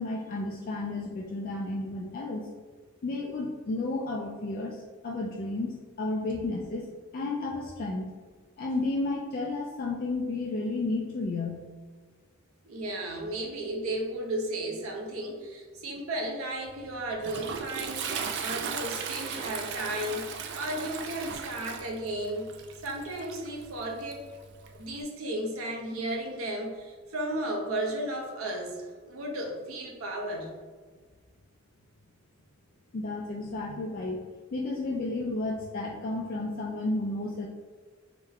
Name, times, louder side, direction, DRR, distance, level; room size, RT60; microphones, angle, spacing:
voice 1, 0.0-2.5 3.0-8.1 8.6-11.7 32.9-34.2 34.5-37.5, left 2 dB, 45° left, -1 dB, 0.3 m, -32 dB
voice 2, 12.6-22.5 22.8-24.2 24.7-30.5, right 1 dB, 80° right, 1 dB, 0.7 m, -34 dB
Toilet flush, 16.7-25.0, right 6 dB, 55° right, 0.3 m, -37 dB
3.5 x 2.1 x 3.5 m, 1.4 s
head